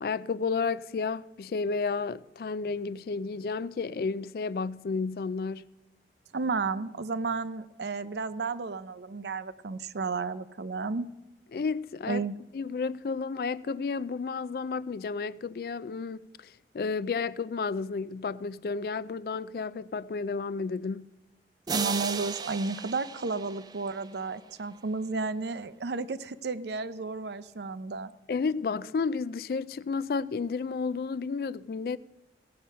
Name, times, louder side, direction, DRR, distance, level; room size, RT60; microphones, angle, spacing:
voice 1, 0.0-5.6 11.5-12.3 12.5-21.1 28.3-32.0, left 4 dB, 55° left, 0.3 m, -32 dB
voice 2, 6.3-11.1 12.1-12.3 21.7-28.1, right 4 dB, 75° right, 0.6 m, -32 dB
sound 1, 21.7-24.5, right 5 dB, 25° right, 0.4 m, -36 dB
16.5 x 7.7 x 5.5 m
head